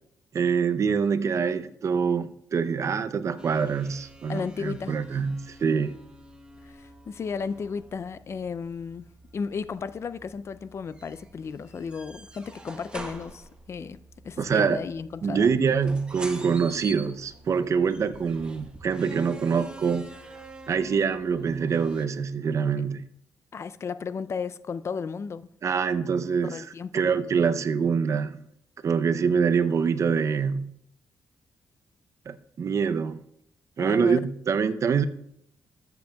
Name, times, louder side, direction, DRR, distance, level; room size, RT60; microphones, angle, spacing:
voice 1, 0.3-6.0 14.4-14.8 15.2-20.1 20.7-23.0 25.6-26.6 26.9-28.4 28.8-30.7 32.3-33.2 33.8-35.1, right 6 dB, 50° right, 0.6 m, -25 dB
sound 1, 3.4-22.1, right 1 dB, 15° right, 1.1 m, -46 dB
voice 2, 4.3-5.3 6.6-9.1 9.3-14.0 14.2-15.6 23.5-25.5 26.5-27.1 33.8-34.2, left 5 dB, 45° left, 0.4 m, -34 dB
13.5 x 7.9 x 2.3 m
cardioid pair, 95°, 7 cm